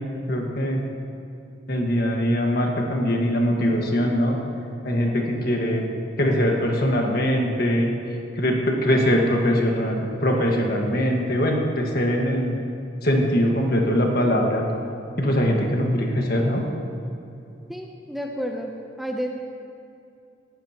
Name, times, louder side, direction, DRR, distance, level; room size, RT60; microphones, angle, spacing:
voice 1, 0.3-0.8 1.7-4.4 4.8-5.8 6.2-7.9 8.4-12.6 13.0-14.6 15.2-16.6, equal, 55° left, 0 dB, 1.7 m, -22 dB
voice 2, 17.7-18.7 19.0-19.3, equal, ahead, 1 dB, 0.6 m, -30 dB
18.5 x 12.5 x 3.0 m, 2.7 s
head